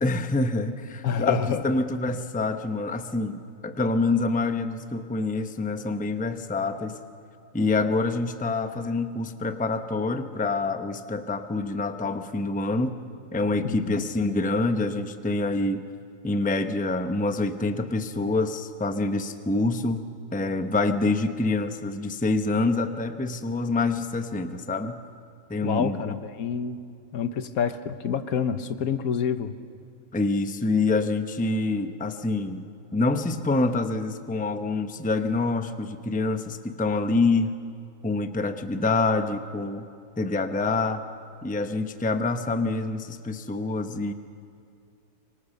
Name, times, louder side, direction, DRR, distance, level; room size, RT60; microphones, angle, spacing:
voice 1, 0.0-7.0 7.5-13.0 13.3-15.8 16.2-20.1 20.3-25.0 25.5-26.1 30.1-32.6 32.9-37.6 38.0-39.9 40.2-41.0 41.4-44.1, left 3 dB, 5° left, 8 dB, 0.7 m, -26 dB
voice 2, 1.0-1.6 13.6-14.0 25.6-26.8 27.1-29.5, left 7 dB, 70° left, 11 dB, 1.4 m, -28 dB
24.5 x 24.5 x 6.7 m, 2.4 s
omnidirectional pair, 1.6 m